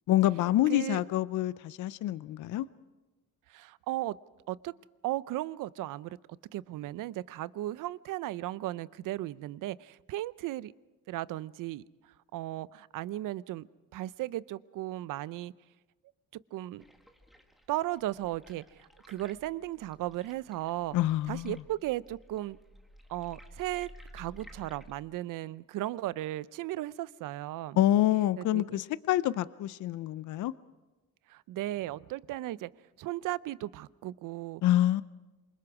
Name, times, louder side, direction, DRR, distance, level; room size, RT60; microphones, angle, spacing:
voice 1, 0.1-2.7 20.9-21.6 27.8-30.5 34.6-35.0, left 13 dB, 65° left, 16 dB, 0.6 m, -27 dB
voice 2, 0.7-1.0 3.5-4.2 4.5-4.7 5.0-6.2 6.5-10.7 11.1-11.8 12.3-13.7 13.9-15.5 16.5-16.8 17.7-21.0 21.3-22.6 23.1-27.8 28.4-28.8 31.3-32.7 33.0-34.6, right 15 dB, 70° right, 18 dB, 0.6 m, -36 dB
sound 1, 16.8-25.0, equal, ahead, 1.6 m, -54 dB
27.0 x 24.5 x 4.9 m, 1.1 s
cardioid pair, 130°, 33 cm